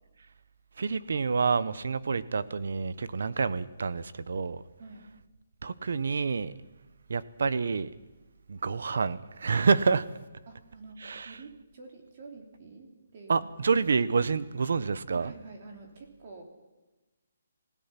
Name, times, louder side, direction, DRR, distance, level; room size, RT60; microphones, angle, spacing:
voice 1, 0.8-4.6 5.6-6.5 7.1-7.9 8.5-10.1 11.0-11.4 13.3-15.3, right 5 dB, 55° right, 16 dB, 1.0 m, -28 dB
voice 2, 10.5-13.5 15.1-16.4, right 3 dB, 30° right, 2 dB, 3.1 m, -48 dB
28.0 x 16.5 x 6.0 m, 1.1 s
hypercardioid pair, 180°, 0 cm